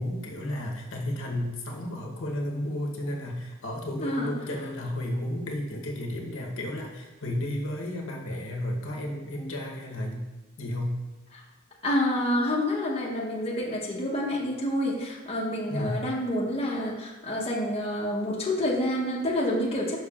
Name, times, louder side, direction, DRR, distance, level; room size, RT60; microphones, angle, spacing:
voice 1, 0.0-10.2 10.6-11.0 15.7-16.0, left 1 dB, 65° left, 0 dB, 1.0 m, -32 dB
voice 2, 4.0-4.3 11.3-11.4 11.8-20.0, left 1 dB, 30° left, -4 dB, 0.9 m, -28 dB
7.0 x 5.7 x 2.4 m, 1.1 s
head